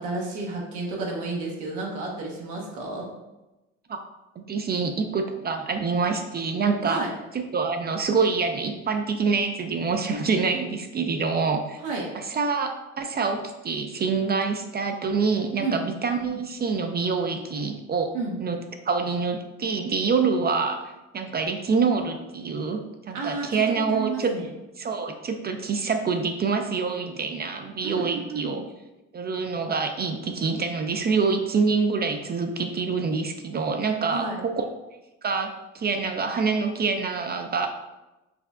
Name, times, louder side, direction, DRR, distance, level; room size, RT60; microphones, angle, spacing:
voice 1, 0.0-3.1 6.8-7.1 11.8-12.1 15.6-15.8 18.1-18.4 23.1-23.6 23.9-24.5 27.8-28.6 34.1-34.4, right 3 dB, 80° right, -2 dB, 1.0 m, -31 dB
voice 2, 4.4-7.1 7.3-11.8 12.1-12.7 13.0-18.1 18.4-18.6 18.9-24.3 24.8-28.6 29.1-34.6 35.2-37.7, right 4 dB, 35° right, 5 dB, 0.4 m, -26 dB
5.7 x 2.1 x 2.4 m, 1.0 s
supercardioid pair, 70°, 29 cm